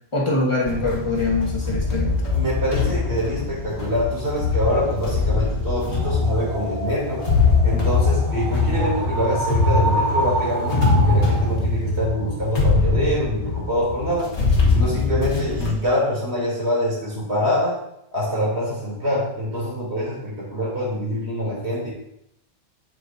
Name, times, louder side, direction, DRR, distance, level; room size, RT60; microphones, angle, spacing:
voice 1, 0.1-2.2, left 2 dB, 25° left, -2 dB, 1.4 m, -23 dB
sound 1, 0.6-15.7, left 3 dB, 85° left, 1.6 m, -22 dB
voice 2, 2.3-7.3 7.6-14.3 14.7-17.8 18.1-21.9, equal, 70° right, -5 dB, 3.5 m, -25 dB
sound 2, 5.8-11.6, right 1 dB, 85° right, 2.2 m, -28 dB
7.7 x 7.7 x 2.7 m, 0.79 s
omnidirectional pair, 1.1 m